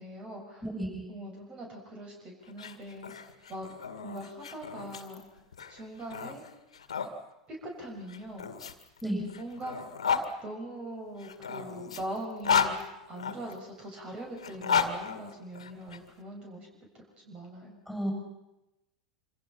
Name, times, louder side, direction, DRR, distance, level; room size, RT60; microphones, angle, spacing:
voice 1, 0.0-0.6 1.1-3.1 3.5-3.7 4.0-5.2 5.7-6.4 7.5-8.5 9.4-9.9 10.4-12.8 13.1-16.7 16.9-17.8, right 1 dB, 30° right, 1 dB, 6.6 m, -41 dB
voice 2, 0.6-1.1 9.0-9.3 17.9-18.1, right 1 dB, ahead, 1 dB, 7.1 m, -32 dB
sound 1, 2.5-7.1 8.1-10.3 11.2-13.5 14.3-16.0, left 6 dB, 70° left, 2.2 m, -33 dB
27.0 x 26.0 x 5.8 m, 0.93 s
figure-of-eight pair, 85°, 3 cm